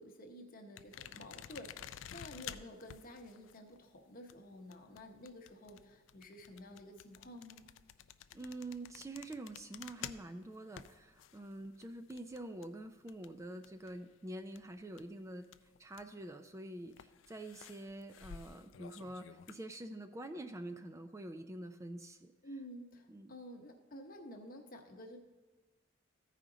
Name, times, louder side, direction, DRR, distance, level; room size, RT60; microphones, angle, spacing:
voice 1, 0.0-7.6 22.4-25.2, left 1 dB, 45° left, 4 dB, 0.9 m, -51 dB
sound 1, 0.8-14.1 14.4-16.2 16.9-19.6, left 9 dB, 70° left, 0.4 m, -52 dB
voice 2, 8.3-15.5 15.8-22.3 23.1-23.3, right 1 dB, 15° right, 7 dB, 0.3 m, -46 dB
14.5 x 5.0 x 3.8 m, 1.2 s
head